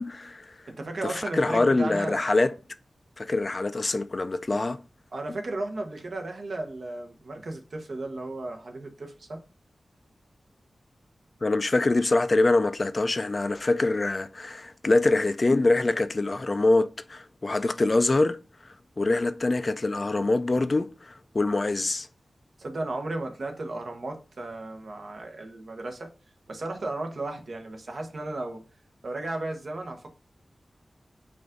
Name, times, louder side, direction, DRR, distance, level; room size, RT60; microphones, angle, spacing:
voice 1, 0.0-0.6 1.0-2.5 3.2-4.8 11.4-18.4 19.0-22.1, left 2 dB, 40° left, 0.3 m, -24 dB
voice 2, 0.7-2.3 5.1-9.4 22.6-26.1 26.5-28.6 29.0-30.1, right 2 dB, 70° right, 1.0 m, -34 dB
5.1 x 2.5 x 3.6 m
wide cardioid pair, 75°, 0 cm